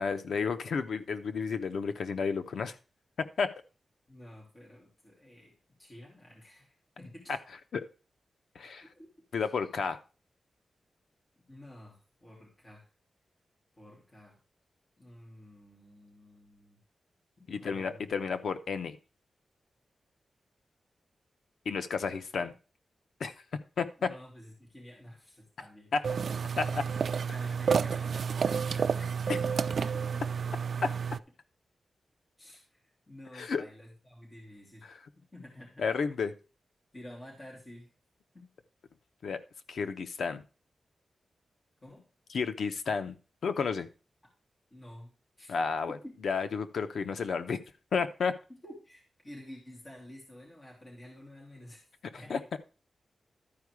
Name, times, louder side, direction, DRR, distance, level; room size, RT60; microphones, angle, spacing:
voice 1, 0.0-2.8 3.2-3.5 7.7-7.8 8.5-8.8 9.3-10.0 17.5-19.0 21.6-22.5 23.2-23.3 23.8-24.1 25.9-26.0 26.6-26.7 30.8-30.9 33.3-33.6 34.8-35.0 35.8-36.3 39.2-39.4 39.7-40.4 42.3-43.2 43.4-43.9 45.5-46.0 46.2-47.6 47.9-48.3 52.1-52.6, left 5 dB, 85° left, 9 dB, 0.8 m, -31 dB
voice 2, 4.1-5.5 5.8-7.3 8.8-9.1 11.5-12.9 13.8-14.4 15.0-16.8 17.4-18.1 22.0-22.4 24.0-25.9 26.5-29.4 29.8-30.2 32.4-32.8 33.1-34.9 35.2-35.8 36.9-37.9 38.3-38.5 41.8-42.0 44.7-45.1 45.4-45.6 45.9-46.1 48.5-51.9 52.2-52.4, left 1 dB, 30° left, -3 dB, 3.2 m, -50 dB
sound 1, 26.0-31.2, right 6 dB, 65° right, 0.3 m, -30 dB
12.5 x 4.8 x 4.8 m, 0.35 s
wide cardioid pair, 125°, 0 cm